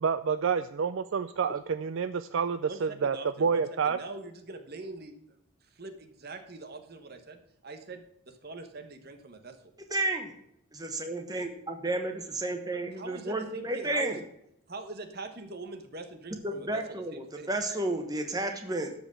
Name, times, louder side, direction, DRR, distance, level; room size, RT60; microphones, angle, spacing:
voice 1, 0.0-4.0, right 6 dB, 60° right, 12 dB, 0.4 m, -28 dB
voice 2, 2.7-5.4 5.7-9.6 13.0-14.2 14.7-17.5, right 3 dB, 45° right, 7 dB, 1.2 m, -43 dB
voice 3, 9.9-10.3 10.7-14.2 16.4-18.9, right 2 dB, 15° right, 5 dB, 1.1 m, -32 dB
13.0 x 5.1 x 6.2 m, 0.75 s
head